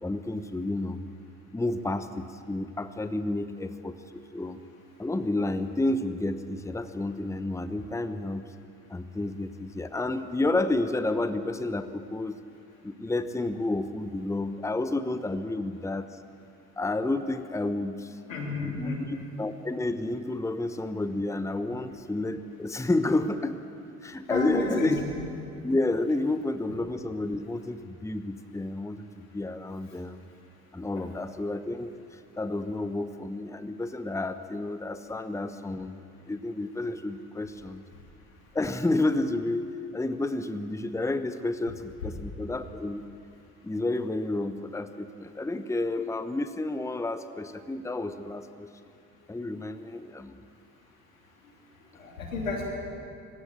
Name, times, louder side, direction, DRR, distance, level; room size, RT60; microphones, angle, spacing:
voice 1, 0.0-1.0 1.5-4.6 5.0-8.4 8.9-12.4 12.8-16.1 16.8-18.2 18.6-23.6 24.0-25.0 25.6-30.3 30.7-36.0 36.3-37.8 38.5-43.0 43.6-48.7 49.3-50.4, left 2 dB, 5° left, 11 dB, 1.0 m, -30 dB
voice 2, 18.3-19.0 24.3-24.9 52.0-52.7, left 3 dB, 85° left, 0 dB, 3.2 m, -31 dB
19.5 x 16.0 x 8.8 m, 2.5 s
hypercardioid pair, 55°, 39 cm